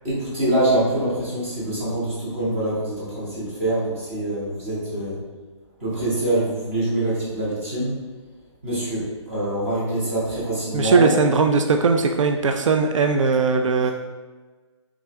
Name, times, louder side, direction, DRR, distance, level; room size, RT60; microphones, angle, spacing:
voice 1, 0.0-5.2 5.8-7.9 8.6-11.1, right 1 dB, 25° right, -9 dB, 1.3 m, -24 dB
voice 2, 10.7-13.9, right 4 dB, 85° right, 5 dB, 0.4 m, -19 dB
3.6 x 3.5 x 3.2 m, 1.3 s
hypercardioid pair, 175°, 16 cm